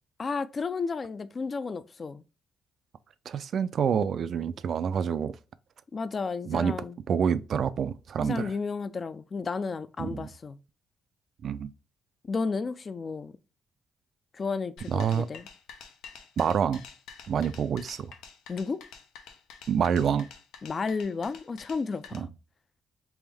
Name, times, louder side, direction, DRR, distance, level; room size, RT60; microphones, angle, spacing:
voice 1, 0.2-2.2 5.9-7.0 8.2-10.6 12.2-13.3 14.3-15.5 18.5-18.8 20.6-22.3, left 4 dB, 40° left, 0.3 m, -32 dB
voice 2, 3.3-5.3 6.5-6.7 7.1-8.5 10.0-10.3 11.4-11.7 14.9-15.3 16.4-16.8 17.3-18.1 19.7-20.3 22.1-22.3, right 7 dB, 60° right, 0.3 m, -27 dB
sound 1, 14.8-22.2, left 6 dB, 90° left, 0.6 m, -48 dB
3.4 x 2.6 x 3.3 m
cardioid pair, 90°, 0 cm